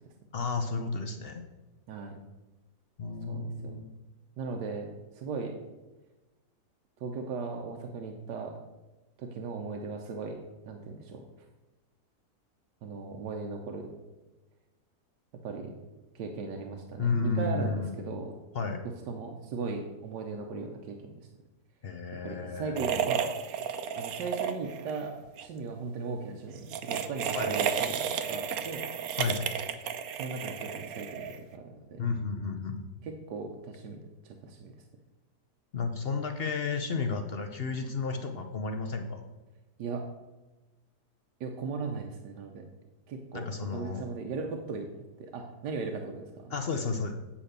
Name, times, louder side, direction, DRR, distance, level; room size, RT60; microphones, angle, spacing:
voice 1, 0.3-1.5 3.0-3.9 17.0-18.0 18.5-18.8 21.8-22.8 27.3-27.5 29.2-29.4 32.0-32.8 35.7-39.2 43.3-44.0 46.5-47.1, left 4 dB, 60° left, 5 dB, 0.6 m, -32 dB
voice 2, 1.9-2.2 3.3-3.7 4.4-5.6 7.0-8.6 9.2-10.4 10.6-11.2 12.8-13.9 15.4-15.7 16.1-18.4 19.1-21.2 22.2-23.4 23.9-25.1 25.4-28.9 30.1-32.1 33.0-34.0 34.2-34.7 39.8-40.0 41.4-42.6 43.1-43.5 43.7-44.9 45.2-46.5, right 4 dB, 85° right, 3 dB, 1.4 m, -37 dB
sound 1, 22.8-25.0 25.2-25.5 26.6-31.5, right 8 dB, 70° right, 1.0 m, -32 dB
8.6 x 5.1 x 6.6 m, 1.1 s
omnidirectional pair, 1.8 m